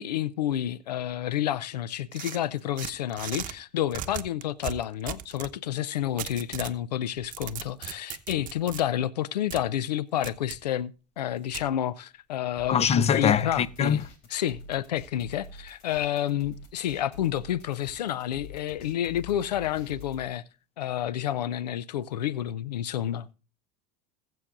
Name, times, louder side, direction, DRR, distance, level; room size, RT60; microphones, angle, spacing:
voice 1, 0.0-20.4 20.8-23.3, left 11 dB, 85° left, 0.5 m, -30 dB
sound 1, 2.1-3.5 3.9-5.5 6.2-6.8 7.2-8.8 9.5-9.6 10.2-10.6 11.5-11.7, right 11 dB, 40° right, 1.0 m, -37 dB
sound 2, 12.6-20.2, left 3 dB, 60° left, 3.4 m, -46 dB
voice 2, 12.7-14.0, left 8 dB, 30° left, 0.7 m, -23 dB
20.5 x 7.6 x 2.5 m
hypercardioid pair, 80°, 20 cm